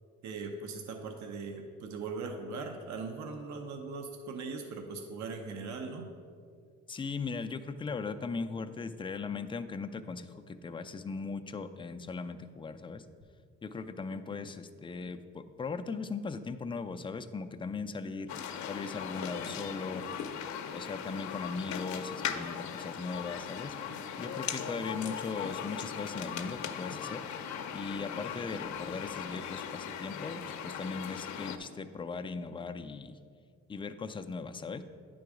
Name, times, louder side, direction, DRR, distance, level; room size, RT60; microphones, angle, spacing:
voice 1, 0.2-6.1, right 4 dB, 70° right, 4 dB, 0.7 m, -40 dB
voice 2, 6.9-13.1 13.6-20.0 20.7-23.7 24.2-27.2 27.7-33.2 33.7-34.8, left 4 dB, 15° left, 8 dB, 0.3 m, -39 dB
sound 1, 18.3-31.6, left 8 dB, 70° left, 0.6 m, -39 dB
9.4 x 3.9 x 4.8 m, 2.1 s
cardioid pair, 90°, 30 cm